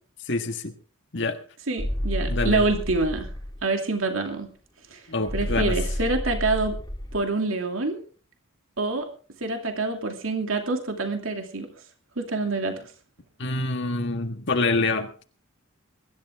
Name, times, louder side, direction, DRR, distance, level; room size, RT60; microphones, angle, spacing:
voice 1, 0.2-0.7 1.1-1.4 2.3-2.6 5.1-5.8 13.4-15.2, left 3 dB, 55° left, 5 dB, 1.6 m, -26 dB
voice 2, 1.7-3.3 3.6-4.5 4.9-5.0 5.3-6.8 7.1-8.0 8.8-9.1 9.4-11.7 12.2-12.8, right 3 dB, 70° right, 4 dB, 2.7 m, -26 dB
sound 1, 1.8-3.6 5.3-7.2, equal, 20° left, 2.1 m, -30 dB
23.0 x 12.0 x 3.6 m, 0.39 s
head